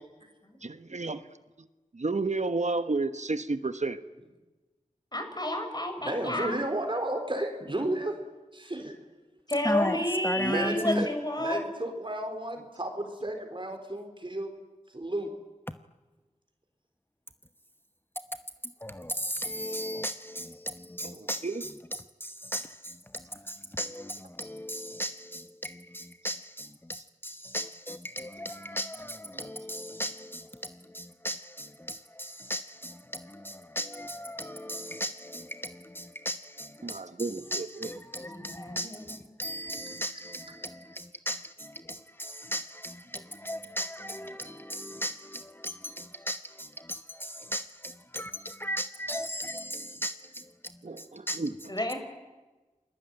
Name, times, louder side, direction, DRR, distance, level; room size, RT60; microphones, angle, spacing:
voice 1, 0.6-1.3 1.6-1.7 1.9-4.0 21.2-21.6 36.8-37.7 50.8-51.5, right 3 dB, 60° right, 1.3 m, -31 dB
voice 2, 5.1-6.6 9.5-11.6 38.2-38.9 51.7-52.0, left 1 dB, 30° left, 6.1 m, -30 dB
voice 3, 6.0-8.2 8.5-9.0 10.4-11.1 11.4-14.5 14.9-15.3, right 1 dB, 40° right, 4.0 m, -33 dB
voice 4, 9.6-11.1 15.7-15.8 18.6-51.4, equal, 15° left, 1.0 m, -37 dB
29.5 x 21.0 x 9.1 m
wide cardioid pair, 40°, 13 cm